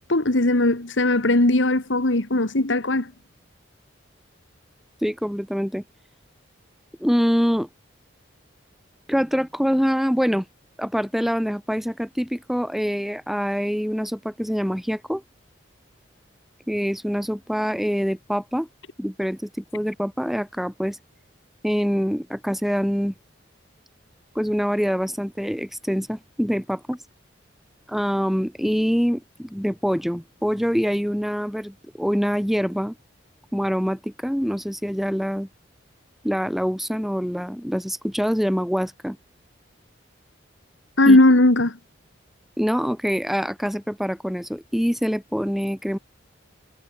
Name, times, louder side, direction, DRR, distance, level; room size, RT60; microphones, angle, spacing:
voice 1, 0.1-3.1 41.0-41.7, left 2 dB, 75° left, 1.9 m, -18 dB
voice 2, 5.0-5.8 7.0-7.7 9.1-10.4 10.8-15.2 16.7-18.7 19.0-21.0 21.6-23.1 24.3-27.0 27.9-32.9 33.5-35.5 36.2-39.2 41.1-41.2 42.6-46.0, equal, ahead, 4.6 m, -25 dB
head